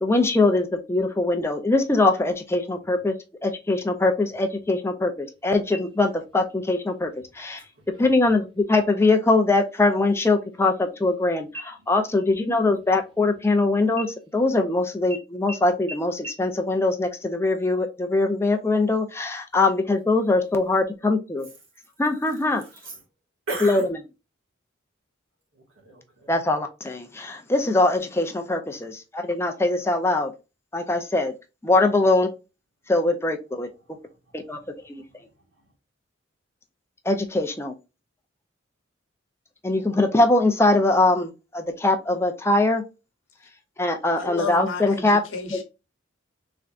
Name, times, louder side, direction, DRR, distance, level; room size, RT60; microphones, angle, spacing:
voice 1, 0.0-3.1 3.4-7.6 8.0-21.5 22.0-22.6 23.6-23.8 26.3-30.3 30.7-31.3 31.6-32.3 32.9-33.7 34.3-34.6 34.9-35.0 37.1-37.7 39.6-42.8 43.8-45.2 45.5-45.6, left 2 dB, 15° left, 0.4 m, -22 dB
sound 1, 5.7-6.4 6.8-6.9 7.4-7.9 8.6-9.2 9.6-9.8 10.1-11.2 11.5-13.5 13.9-14.7 15.1-15.2 15.5-15.6 15.9-16.0 16.2-16.3, right 1 dB, 25° right, 0.7 m, -41 dB
voice 2, 22.6-23.0 23.5-23.9 25.5-26.3 34.5-34.6 35.0-35.2, right 2 dB, 75° right, 1.8 m, -37 dB
voice 3, 44.1-45.6, left 4 dB, 80° left, 1.0 m, -33 dB
3.8 x 3.3 x 2.4 m
head